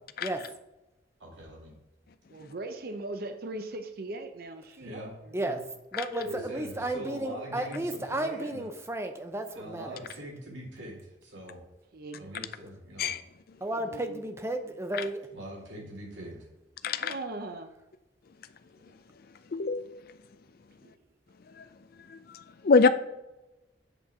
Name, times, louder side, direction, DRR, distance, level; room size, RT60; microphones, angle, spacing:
voice 1, 1.2-1.7 4.8-5.6 6.2-8.7 9.5-11.6 12.2-13.1 15.3-16.4, equal, 85° right, -3 dB, 2.3 m, -43 dB
voice 2, 2.3-5.4 6.0-6.7 11.9-12.3 13.7-14.2 16.1-16.3 17.0-17.7 18.8-18.9 20.8-20.9, right 2 dB, 55° right, 7 dB, 0.6 m, -40 dB
voice 3, 5.9-10.0 13.6-15.3, right 1 dB, 15° right, 7 dB, 0.6 m, -33 dB
voice 4, 19.5-20.0 22.1-22.2 22.6-22.9, left 4 dB, 50° left, 11 dB, 0.4 m, -23 dB
8.0 x 4.4 x 4.9 m, 0.96 s
head